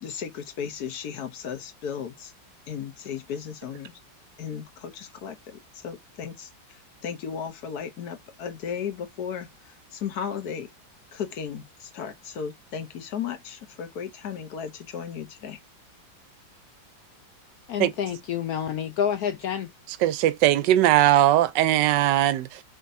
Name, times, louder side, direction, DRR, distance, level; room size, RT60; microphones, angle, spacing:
voice 1, 0.0-2.3 2.7-3.9 4.4-9.5 9.9-10.7 11.1-15.6, left 7 dB, 60° left, 1.3 m, -35 dB
voice 2, 17.7-19.7, left 9 dB, 80° left, 0.8 m, -28 dB
voice 3, 20.0-22.6, right 13 dB, 75° right, 1.1 m, -20 dB
5.0 x 3.9 x 2.6 m
omnidirectional pair, 2.1 m